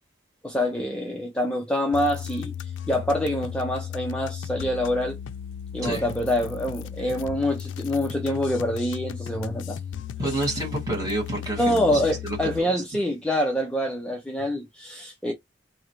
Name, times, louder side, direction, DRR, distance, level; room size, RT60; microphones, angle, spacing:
voice 1, 0.4-5.2 5.7-9.8 11.6-15.3, left 1 dB, 5° left, 0.4 m, -26 dB
sound 1, 1.9-12.6, left 8 dB, 80° left, 0.4 m, -35 dB
voice 2, 10.2-12.7, right 2 dB, 20° right, 1.9 m, -29 dB
3.8 x 2.0 x 2.9 m
head